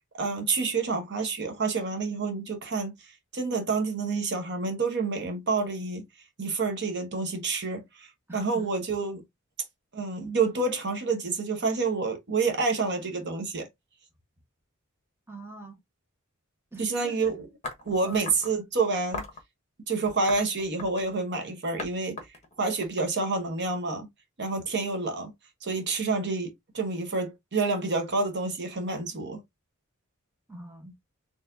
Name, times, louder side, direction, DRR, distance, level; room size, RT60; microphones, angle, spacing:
voice 1, 0.2-2.9 3.3-6.0 6.4-8.1 8.3-9.2 9.9-13.7 16.8-17.5 17.9-19.2 19.9-22.2 22.6-24.1 24.4-25.3 25.6-29.4, right 4 dB, 55° right, 1.0 m, -28 dB
voice 2, 8.3-8.7 15.3-15.8 16.7-17.3 18.0-18.2 30.5-31.0, right 2 dB, 10° right, 1.1 m, -44 dB
sound 1, 17.6-18.5 19.1-19.4 20.0-21.2 21.8-21.9 22.2-23.6, left 3 dB, 30° left, 1.2 m, -38 dB
4.3 x 3.2 x 2.6 m
head